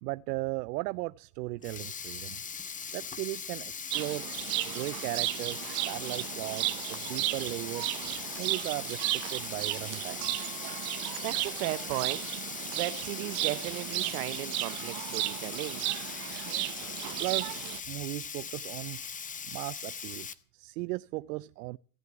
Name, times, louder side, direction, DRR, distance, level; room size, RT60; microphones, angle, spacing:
voice 1, 0.0-2.4 2.9-4.3 4.6-8.0 8.4-10.3 17.2-19.0 19.4-20.3 20.5-21.8, right 21 dB, 85° right, 0.6 m, -37 dB
Sink (filling or washing), 1.5-20.3, left 6 dB, 15° left, 0.8 m, -40 dB
sound 1, 3.9-17.8, right 22 dB, 55° right, 0.8 m, -35 dB
voice 2, 11.2-12.3 12.7-15.8, right 18 dB, 70° right, 1.1 m, -35 dB
16.5 x 8.0 x 8.1 m
supercardioid pair, 125°, 45 cm